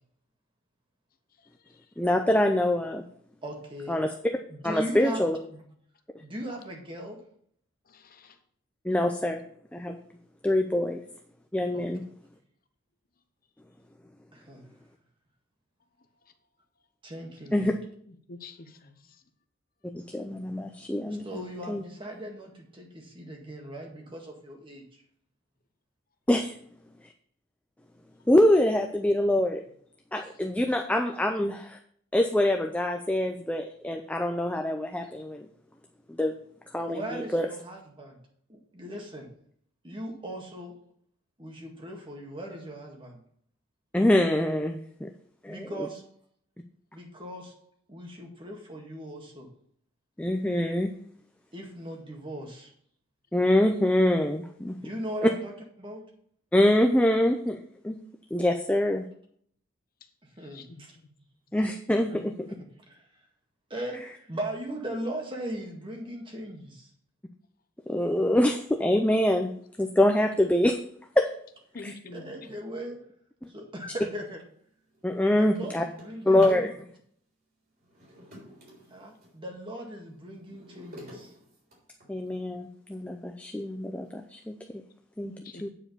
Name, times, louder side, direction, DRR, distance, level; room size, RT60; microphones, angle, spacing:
voice 1, 2.0-3.0 3.9-4.1 4.6-5.4 8.8-9.4 9.7-10.0 10.4-11.0 11.5-12.0 17.5-17.7 19.9-21.2 21.7-21.8 26.3-26.5 28.3-29.6 30.1-31.8 32.1-35.5 36.1-36.3 36.7-37.5 43.9-45.1 45.4-45.7 50.2-50.9 53.3-54.8 56.5-57.6 57.8-58.0 58.3-59.0 61.5-62.2 67.9-69.5 69.8-70.8 71.2-71.3 71.8-71.9 75.0-75.8 76.3-76.8 82.1-84.5 85.2-85.3 85.6-85.7, left 1 dB, 5° left, 0.5 m, -24 dB
voice 2, 3.4-4.0 4.5-5.2 5.5-5.6 6.2-7.2 11.7-11.9 14.3-14.6 17.0-17.8 21.1-25.0 36.8-38.2 38.5-39.3 39.8-40.7 41.4-43.2 45.5-46.0 46.9-47.6 47.9-49.5 51.5-52.7 54.8-55.5 55.8-56.0 60.2-61.0 62.1-62.2 62.9-63.1 63.7-66.9 72.1-73.1 73.5-74.4 75.3-76.7 78.9-81.3, right 1 dB, 25° right, 1.8 m, -39 dB
voice 3, 7.9-8.3 18.3-18.9 60.5-60.8 71.7-72.2 85.2-85.6, left 3 dB, 45° left, 0.8 m, -45 dB
Drawer open or close, 74.3-74.4 74.7-76.7 77.8-79.4 79.9-82.4 83.0-83.1 83.6-83.7 84.1-84.4, left 1 dB, 45° right, 3.5 m, -48 dB
8.9 x 4.9 x 6.7 m
head